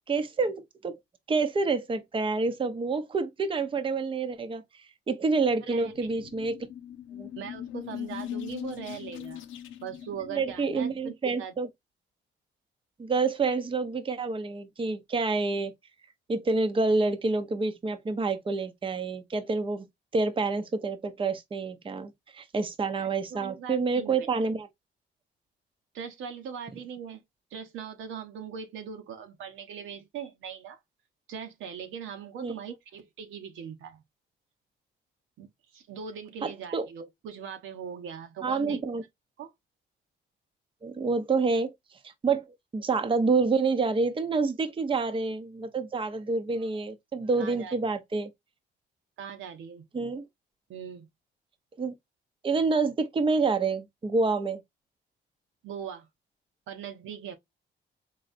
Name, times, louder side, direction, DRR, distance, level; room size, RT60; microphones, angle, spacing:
voice 1, 0.1-1.0 1.3-4.6 5.1-6.7 7.2-7.3 10.3-11.7 13.0-15.7 16.3-19.9 20.1-24.7 32.4-32.6 36.4-36.9 38.4-39.0 40.8-41.7 42.0-42.4 42.7-48.3 49.9-50.2 51.8-51.9 52.4-54.6, right 4 dB, 25° right, 0.7 m, -28 dB
voice 2, 5.6-5.9 7.4-9.4 9.8-11.5 23.0-24.5 25.9-27.2 27.5-30.8 31.3-34.0 35.4-38.8 39.4-39.5 47.4-47.8 49.2-49.8 50.7-51.1 55.6-56.1 56.7-57.3, right 7 dB, 80° right, 1.0 m, -40 dB
sound 1, 5.7-11.1, left 10 dB, 80° left, 0.7 m, -41 dB
4.1 x 3.1 x 2.5 m
cardioid pair, 90°, 20 cm